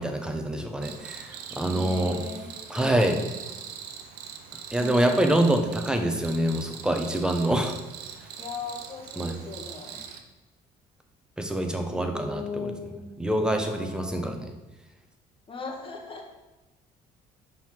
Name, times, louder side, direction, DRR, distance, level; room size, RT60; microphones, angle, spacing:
voice 1, 0.0-2.2 2.7-3.2 4.7-7.7 9.2-9.3 11.4-12.7 13.2-14.4, right 1 dB, 5° right, 4 dB, 0.9 m, -25 dB
Cricket, 0.8-10.2, right 8 dB, 85° right, 0.8 m, -42 dB
voice 2, 1.7-3.3 4.8-5.4 8.4-10.0 11.9-13.2 13.6-14.4 15.5-16.3, left 4 dB, 30° left, 0 dB, 1.6 m, -38 dB
5.5 x 4.7 x 5.9 m, 1.1 s
cardioid pair, 110°, 17 cm